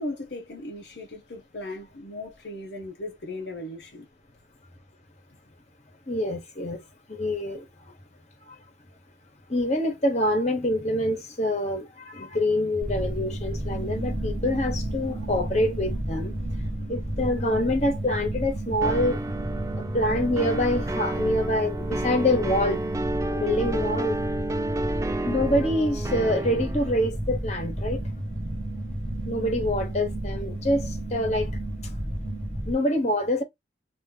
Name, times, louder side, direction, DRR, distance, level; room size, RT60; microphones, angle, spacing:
voice 1, 0.0-4.1, left 1 dB, 60° left, 0.8 m, -37 dB
voice 2, 6.1-6.8 7.2-7.6 9.5-16.3 16.9-19.2 19.9-22.8 23.4-24.2 25.2-28.0 29.3-31.5 32.7-33.4, left 1 dB, 40° left, 1.2 m, -26 dB
sound 1, 12.8-32.7, right 1 dB, 5° left, 1.3 m, -32 dB
sound 2, 18.8-27.1, right 1 dB, 15° right, 0.4 m, -31 dB
2.9 x 2.7 x 3.7 m
head